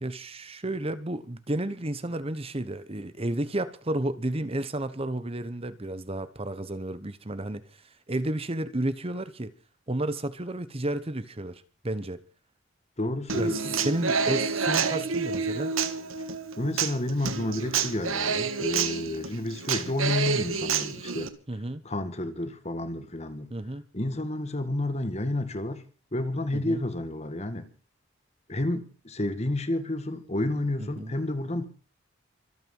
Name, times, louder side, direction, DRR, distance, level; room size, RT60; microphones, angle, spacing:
voice 1, 0.0-9.5 9.9-12.2 13.4-15.7 21.5-21.8 23.5-23.8 26.5-26.8 30.8-31.1, right 1 dB, 30° right, 1.0 m, -32 dB
voice 2, 13.0-13.7 16.6-21.3 21.8-23.5 23.9-25.8 26.1-27.7 28.5-31.7, left 1 dB, 30° left, 1.9 m, -30 dB
Human voice / Acoustic guitar, 13.3-21.3, right 5 dB, 85° right, 1.7 m, -28 dB
25.0 x 9.1 x 5.5 m
head